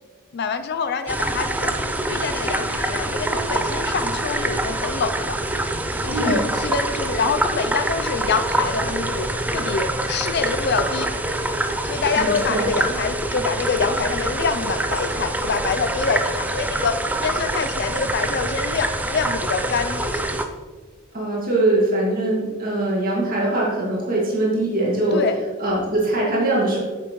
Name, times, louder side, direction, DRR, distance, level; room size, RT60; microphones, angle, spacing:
voice 1, 0.3-1.7 2.1-5.4 6.0-11.1 11.8-20.3 25.1-25.4, left 5 dB, 50° left, 10 dB, 0.5 m, -26 dB
sound 1, 1.1-20.4, right 1 dB, 10° right, 0.4 m, -25 dB
voice 2, 12.2-12.7 21.1-25.2 25.6-26.8, right 2 dB, 40° right, -4 dB, 2.2 m, -22 dB
8.8 x 6.8 x 3.1 m, 1.4 s
head